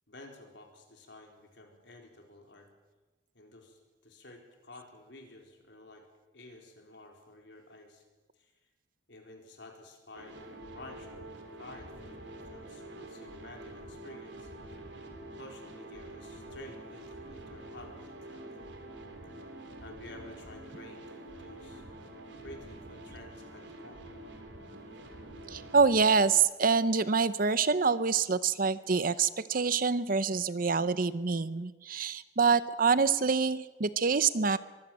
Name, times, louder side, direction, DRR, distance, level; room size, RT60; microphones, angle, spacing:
voice 1, 0.1-2.7 3.3-6.0 6.3-8.0 8.4-8.5 9.1-10.5 10.7-11.2 11.6-12.2 12.5-14.5 15.4-18.6 19.8-21.8 22.4-24.1, left 2 dB, 65° left, 2 dB, 4.2 m, -51 dB
sound 1, 10.1-26.4, right 1 dB, 70° right, 3.3 m, -47 dB
voice 2, 25.5-34.6, right 5 dB, 45° right, 15 dB, 0.7 m, -26 dB
23.0 x 15.5 x 7.4 m, 1.2 s
head